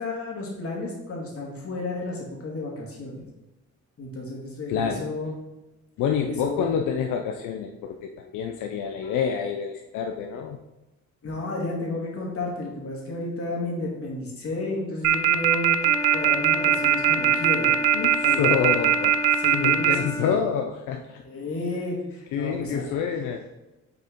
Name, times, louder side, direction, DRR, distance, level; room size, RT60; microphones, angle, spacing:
voice 1, 0.0-3.2 4.0-5.3 6.3-6.7 11.2-15.8 16.1-17.7 18.2-18.4 19.4-19.9 20.2-20.3 21.3-22.9, left 2 dB, 50° left, -2 dB, 2.0 m, -32 dB
voice 2, 4.7-5.0 6.0-10.6 17.9-21.2 22.3-23.5, left 7 dB, 85° left, 4 dB, 0.5 m, -27 dB
sound 1, 15.0-19.9, right 12 dB, 75° right, 0.6 m, -19 dB
Wind instrument woodwind instrument, 15.8-20.5, equal, 10° left, 0.5 m, -32 dB
6.5 x 4.2 x 3.6 m, 1.0 s
cardioid pair, 90°, 30 cm